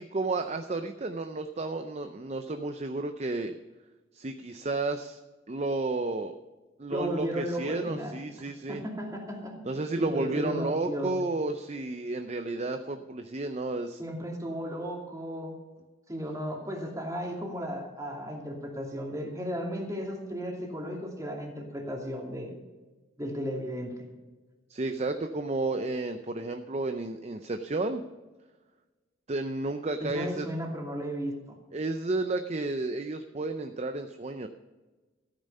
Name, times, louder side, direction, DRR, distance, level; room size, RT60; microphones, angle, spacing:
voice 1, 0.0-3.6 4.1-5.2 5.5-6.3 6.8-8.8 9.6-14.0 24.7-28.0 29.3-30.5 31.7-34.5, right 2 dB, 35° right, 7 dB, 0.6 m, -32 dB
voice 2, 6.9-8.2 8.7-9.6 10.0-11.2 14.0-15.6 16.1-22.6 23.2-24.1 30.0-31.6, equal, 20° right, 0 dB, 2.6 m, -35 dB
14.0 x 9.0 x 5.5 m, 1.2 s
head